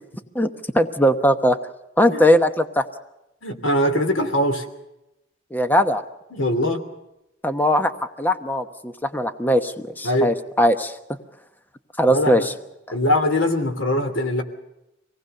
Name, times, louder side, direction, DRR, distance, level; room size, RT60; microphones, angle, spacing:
voice 1, 0.3-1.6 2.0-2.9 5.5-6.0 7.4-11.0 12.0-12.5 12.9-13.0, equal, 10° left, 9 dB, 1.0 m, -20 dB
voice 2, 3.4-4.6 6.3-6.8 10.0-10.3 12.1-12.5 12.9-14.4, left 1 dB, 80° left, 7 dB, 2.9 m, -21 dB
25.5 x 18.5 x 6.7 m, 0.92 s
head